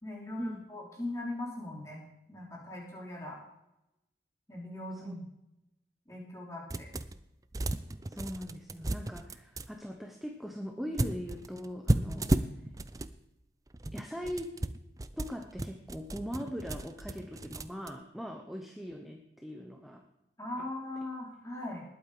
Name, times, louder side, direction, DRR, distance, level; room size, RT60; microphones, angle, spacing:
voice 1, 0.0-2.0 2.3-3.4 4.5-5.2 6.1-6.9 12.2-12.3 20.4-21.8, left 1 dB, 15° left, -2 dB, 3.4 m, -40 dB
sound 1, 6.7-7.2 7.5-9.7 11.0-13.1 13.7-17.9, right 1 dB, 20° right, 0.5 m, -33 dB
voice 2, 8.1-12.3 13.9-14.5 15.2-20.0 20.6-20.7, equal, ahead, 3 dB, 0.9 m, -40 dB
19.5 x 8.7 x 4.9 m, 0.89 s
head